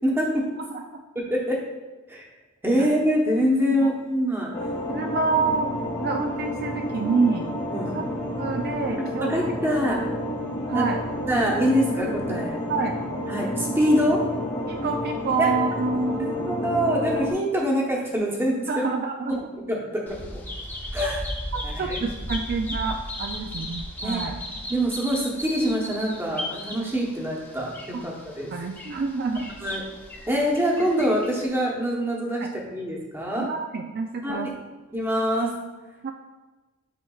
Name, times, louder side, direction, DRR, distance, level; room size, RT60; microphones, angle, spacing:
voice 1, 0.0-0.4 1.1-1.6 2.1-2.3 2.6-4.5 7.7-8.0 9.2-10.0 10.7-10.8 11.3-12.6 13.3-14.2 15.4-15.5 16.2-18.8 19.3-19.8 20.2-20.3 20.9-21.2 21.6-22.0 24.0-24.2 24.7-27.7 28.0-28.5 29.6-29.8 30.3-33.5 34.2-34.5 34.9-35.5, equal, 10° right, -2 dB, 1.0 m, -24 dB
voice 2, 0.7-1.0 2.8-2.9 3.8-3.9 4.9-5.7 6.0-7.5 7.9-8.0 8.4-9.3 10.4-11.0 12.7-13.0 14.7-16.3 18.7-19.4 21.0-21.1 21.5-24.4 27.9-28.0 28.5-29.5 30.8-30.9 32.4-32.5 33.4-34.5 36.0-36.1, right 4 dB, 45° right, 4 dB, 0.3 m, -27 dB
sound 1, 4.5-17.3, left 1 dB, 25° left, 1.3 m, -30 dB
Bird vocalization bird call bird song, 20.1-31.5, left 1 dB, 10° left, 0.6 m, -36 dB
8.9 x 4.6 x 2.4 m, 1.2 s
head